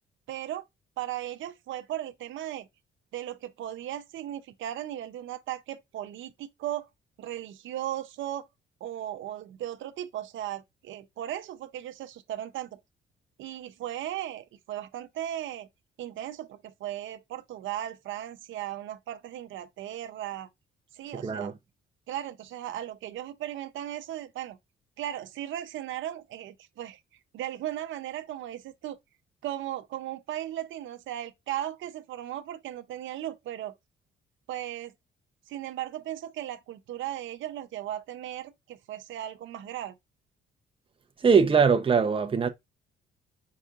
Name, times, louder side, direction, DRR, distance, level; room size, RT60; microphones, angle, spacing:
voice 1, 0.3-0.6 1.0-2.7 3.1-6.9 7.2-8.5 8.8-12.8 13.4-15.7 16.0-20.5 20.9-21.5 22.1-24.6 25.0-29.0 29.4-33.7 34.5-34.9 35.5-40.0, right 12 dB, 75° right, 0.6 m, -36 dB
voice 2, 21.1-21.5 41.2-42.5, right 6 dB, 25° right, 0.7 m, -22 dB
4.7 x 4.2 x 2.4 m
cardioid pair, 90°, 20 cm